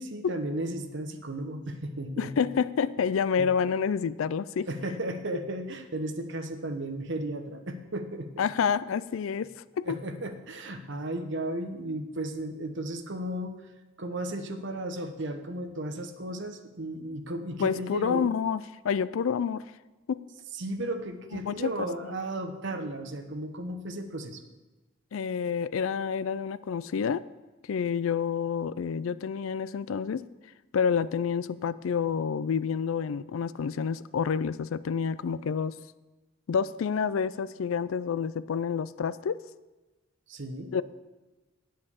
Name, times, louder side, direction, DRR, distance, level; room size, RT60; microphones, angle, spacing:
voice 1, 0.0-2.5 3.4-3.5 4.7-8.3 9.8-13.7 14.0-18.3 20.5-24.4 40.3-40.7, right 1 dB, 60° right, 7 dB, 1.0 m, -35 dB
voice 2, 2.2-4.7 8.4-9.5 9.8-10.0 17.6-19.6 20.1-20.2 21.4-21.9 25.1-27.2 27.7-30.3 30.7-35.7 36.5-39.4 40.7-40.8, left 6 dB, 75° left, 17 dB, 0.4 m, -28 dB
8.5 x 7.8 x 7.0 m, 1.2 s
head